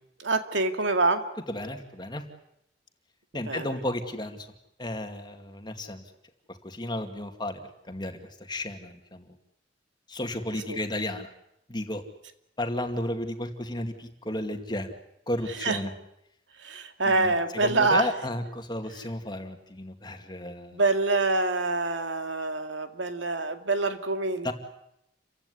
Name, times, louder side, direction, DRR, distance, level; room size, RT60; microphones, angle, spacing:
voice 1, 0.2-1.2 3.5-3.7 10.7-10.8 15.6-15.8 16.6-18.1 20.7-24.5, right 3 dB, 80° right, 7 dB, 2.3 m, -26 dB
voice 2, 1.5-2.3 3.3-4.5 4.8-6.0 6.5-9.3 10.1-11.3 11.7-12.0 12.6-14.9 15.3-15.9 17.0-20.8 24.4-24.5, left 1 dB, 25° left, 5 dB, 2.4 m, -33 dB
29.0 x 16.0 x 9.9 m, 0.82 s
head